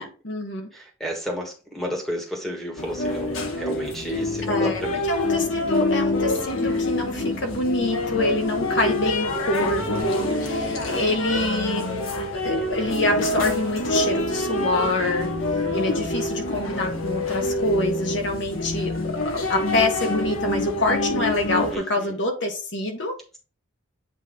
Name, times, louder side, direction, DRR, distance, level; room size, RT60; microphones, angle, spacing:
voice 1, 0.0-0.7 4.5-4.8 5.1-11.9 12.3-15.3 15.7-18.9 19.2-23.1, left 2 dB, 60° left, 1.4 m, -26 dB
voice 2, 0.7-5.0 10.3-10.9 21.7-22.1, equal, ahead, 1.6 m, -32 dB
sound 1, 2.8-21.8, left 2 dB, 85° left, 1.4 m, -26 dB
8.3 x 3.1 x 3.8 m
head